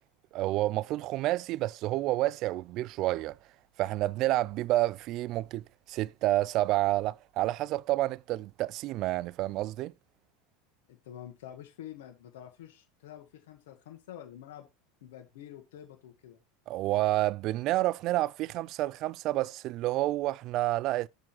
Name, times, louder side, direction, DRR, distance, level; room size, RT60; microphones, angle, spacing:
voice 1, 0.3-3.4 3.8-9.9 16.7-21.1, right 16 dB, 45° right, 0.3 m, -29 dB
voice 2, 10.9-14.7 15.0-16.4, left 11 dB, 85° left, 1.5 m, -47 dB
7.6 x 3.6 x 6.0 m
supercardioid pair, 140°, 0 cm